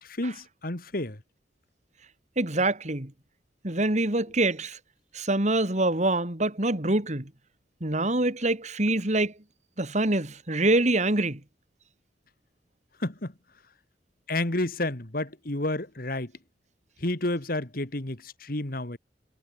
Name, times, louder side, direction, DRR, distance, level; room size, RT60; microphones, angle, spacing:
voice 1, 0.0-1.2 13.0-13.3 14.3-16.3 17.0-19.0, left 1 dB, 55° left, 2.3 m, -30 dB
voice 2, 2.4-3.1 3.6-4.8 5.1-7.3 7.8-9.3 9.8-11.4, right 2 dB, 40° right, 2.6 m, -25 dB
head